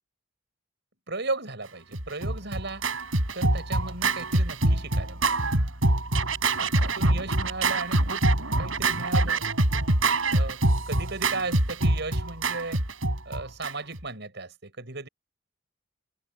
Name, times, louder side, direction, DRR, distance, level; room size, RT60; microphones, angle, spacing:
voice 1, 1.1-2.8 3.3-5.4 6.6-8.2 8.6-9.5 10.3-12.8 13.3-15.1, right 3 dB, 60° right, 7.4 m, -36 dB
Scratching (performance technique), 1.9-14.0, right 2 dB, 80° right, 5.9 m, -25 dB
head